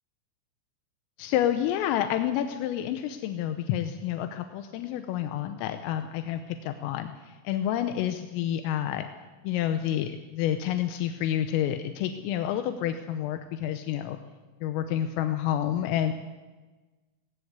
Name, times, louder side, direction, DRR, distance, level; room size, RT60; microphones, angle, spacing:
voice 1, 1.2-9.1 9.5-14.2 14.6-16.1, left 11 dB, 85° left, 8 dB, 3.5 m, -29 dB
18.5 x 18.0 x 8.2 m, 1.3 s
omnidirectional pair, 5.8 m